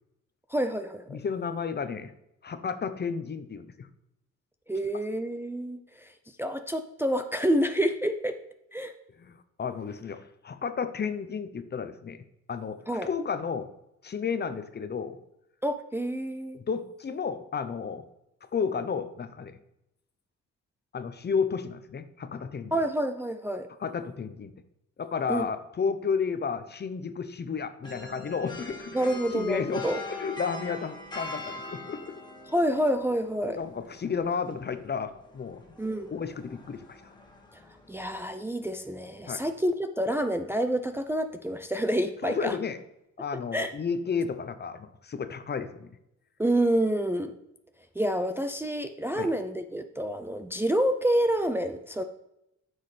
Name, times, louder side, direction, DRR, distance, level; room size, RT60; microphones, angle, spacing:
voice 1, 0.5-1.2 4.7-6.1 6.4-8.4 8.7-8.9 12.9-13.1 15.6-16.6 22.7-23.7 25.3-25.5 28.9-30.0 32.5-33.6 35.8-36.1 37.5-37.6 37.9-42.6 43.5-43.7 46.4-47.3 48.0-52.0, right 1 dB, 10° right, 7 dB, 0.5 m, -28 dB
voice 2, 1.1-2.1 2.4-3.9 9.2-12.2 12.5-13.7 14.0-15.2 16.5-18.0 18.5-19.6 20.9-22.7 23.8-24.5 25.0-32.1 33.4-35.6 36.1-37.1 39.3-39.5 42.2-42.8 43.2-45.9 49.1-49.3, left 6 dB, 35° left, 10 dB, 0.7 m, -32 dB
sound 1, 27.8-38.1, left 2 dB, 15° left, 1.7 m, -43 dB
9.7 x 6.4 x 3.3 m, 0.85 s
cardioid pair, 90°, 30 cm